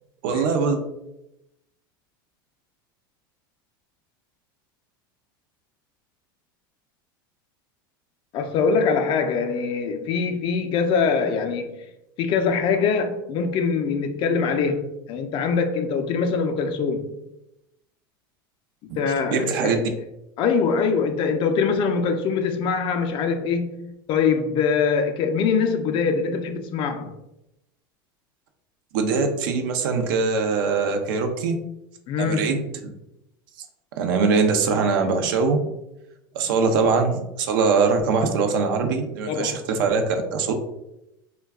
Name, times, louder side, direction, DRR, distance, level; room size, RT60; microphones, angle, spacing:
voice 1, 0.2-0.8 18.9-19.0 19.3-19.9 28.9-31.6 32.2-32.7 33.9-35.7 36.3-40.5, right 4 dB, 70° right, 0.5 m, -22 dB
voice 2, 8.3-11.8 12.2-17.1 19.0-19.8 20.4-27.1 32.1-32.5 39.3-39.6, left 5 dB, 45° left, 0.4 m, -23 dB
2.2 x 2.2 x 3.4 m
supercardioid pair, 110°, 12 cm